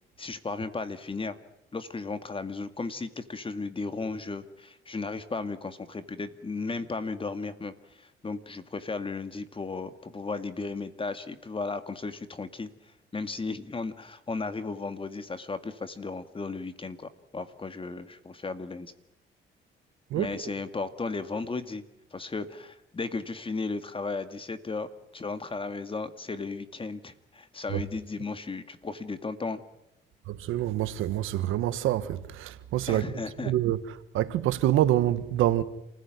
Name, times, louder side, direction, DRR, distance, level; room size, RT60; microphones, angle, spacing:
voice 1, 0.2-1.4 1.7-18.9 20.2-21.8 22.1-29.6 32.9-33.5, left 3 dB, 25° left, 2.0 m, -35 dB
voice 2, 30.3-33.0 33.4-33.8 34.1-35.6, right 13 dB, 90° right, 1.4 m, -26 dB
28.0 x 15.5 x 9.4 m
cardioid pair, 90°, 20 cm